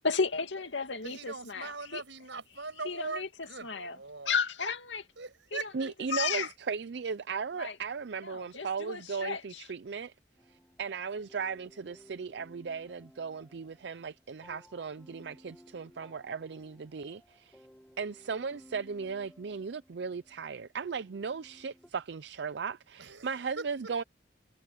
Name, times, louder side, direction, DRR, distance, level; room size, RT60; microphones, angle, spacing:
voice 1, 0.0-2.0 2.9-3.3 3.6-4.0 4.3-5.1 6.1-6.5 7.6-7.8 8.2-9.6, left 5 dB, 80° left, 2.4 m, -33 dB
voice 2, 1.0-4.4 5.2-6.2 23.0-23.8, right 4 dB, 85° right, 6.0 m, -41 dB
voice 3, 5.7-10.1 10.5-17.6 18.0-24.0, right 5 dB, 65° right, 0.5 m, -37 dB
sound 1, 10.4-21.9, equal, 5° left, 5.2 m, -58 dB
head